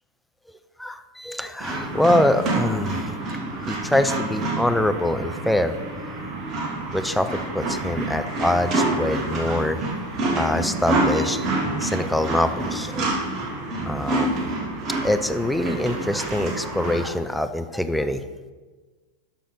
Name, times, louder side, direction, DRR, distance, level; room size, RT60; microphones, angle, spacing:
voice 1, 0.8-3.2 3.6-5.7 6.9-9.8 10.3-11.5 11.8-13.3 13.9-14.5 15.0-18.2, left 1 dB, ahead, 8 dB, 0.5 m, -24 dB
sound 1, 1.6-17.1, right 2 dB, 30° right, 1.6 m, -27 dB
12.0 x 5.8 x 4.2 m, 1.4 s
figure-of-eight pair, 90°, 0 cm